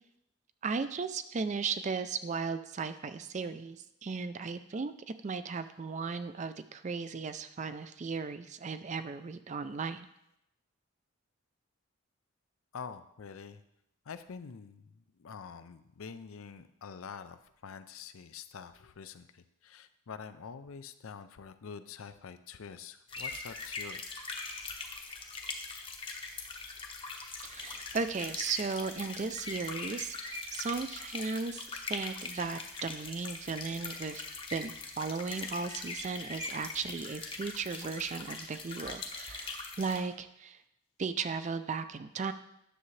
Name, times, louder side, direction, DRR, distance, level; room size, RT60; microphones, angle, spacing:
voice 1, 0.6-4.9 5.2-10.1 27.4-34.2 34.5-40.6 41.0-42.3, right 4 dB, 35° right, 11 dB, 0.4 m, -36 dB
voice 2, 12.7-13.6 14.1-24.0, left 6 dB, 80° left, 11 dB, 0.5 m, -46 dB
sound 1, 23.1-40.0, left 3 dB, 25° left, 0.8 m, -41 dB
10.0 x 6.9 x 3.2 m, 0.81 s
head